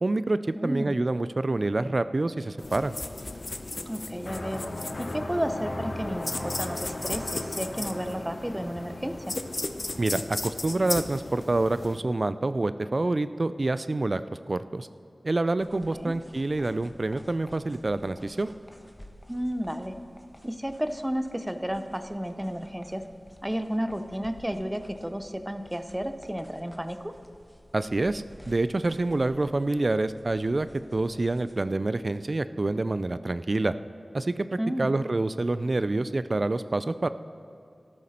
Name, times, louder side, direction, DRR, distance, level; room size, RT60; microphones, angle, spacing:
voice 1, 0.0-2.9 10.0-14.2 14.5-14.9 15.2-18.5 27.7-30.7 30.9-33.7 34.1-37.1, right 2 dB, 45° right, 13 dB, 0.4 m, -27 dB
voice 2, 0.5-1.0 3.9-4.7 5.0-9.4 15.7-16.2 19.3-20.0 20.4-23.1 23.4-27.2 34.6-34.9, equal, 10° right, 9 dB, 0.7 m, -32 dB
sound 1, 2.6-12.0, left 2 dB, 50° left, 0.6 m, -36 dB
sound 2, 4.3-11.0, left 1 dB, 65° left, 1.2 m, -38 dB
sound 3, 15.6-31.6, equal, 10° left, 1.2 m, -52 dB
13.5 x 12.5 x 4.3 m, 2.6 s
wide cardioid pair, 75°, 0 cm